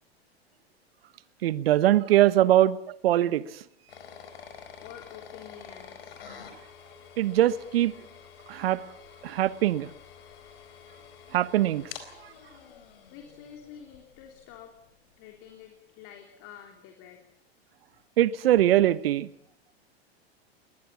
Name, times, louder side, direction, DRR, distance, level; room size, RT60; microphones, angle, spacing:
voice 1, 1.4-3.6 7.2-7.9 8.5-8.8 9.2-9.9 11.3-11.9 18.2-19.3, right 13 dB, 70° right, 16 dB, 1.3 m, -22 dB
sound 1, 3.9-14.7, left 7 dB, 70° left, 4.3 m, -48 dB
voice 2, 4.8-6.2 13.1-14.7 15.2-17.2, left 9 dB, 50° left, 3 dB, 3.6 m, -48 dB
22.0 x 20.0 x 7.3 m, 0.69 s
hypercardioid pair, 100°, 31 cm